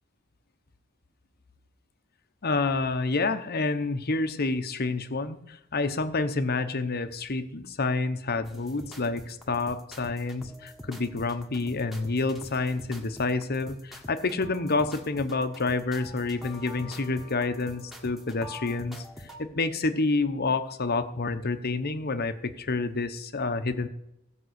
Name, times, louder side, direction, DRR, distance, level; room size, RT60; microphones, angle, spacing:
voice 1, 2.4-23.9, left 3 dB, 50° left, 10 dB, 1.0 m, -28 dB
sound 1, 8.4-19.4, left 1 dB, ahead, 1.6 m, -45 dB
15.5 x 5.5 x 8.1 m, 0.87 s
head